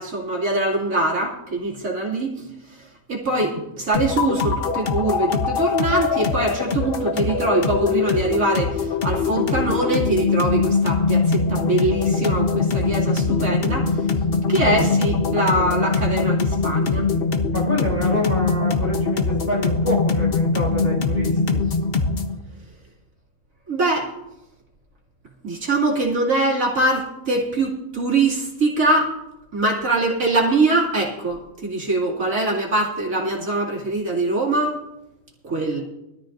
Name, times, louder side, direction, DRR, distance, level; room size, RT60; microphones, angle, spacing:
voice 1, 0.0-2.3 3.1-13.9 14.5-17.1 23.7-24.1 25.4-29.1 29.5-34.8 35.4-35.8, right 2 dB, 80° right, -2 dB, 2.8 m, -23 dB
sound 1, 3.9-22.4, left 4 dB, 45° left, 1.2 m, -22 dB
voice 2, 14.6-15.0 17.5-21.6, equal, 10° right, -3 dB, 3.1 m, -27 dB
20.5 x 13.5 x 2.6 m, 0.93 s
omnidirectional pair, 1.4 m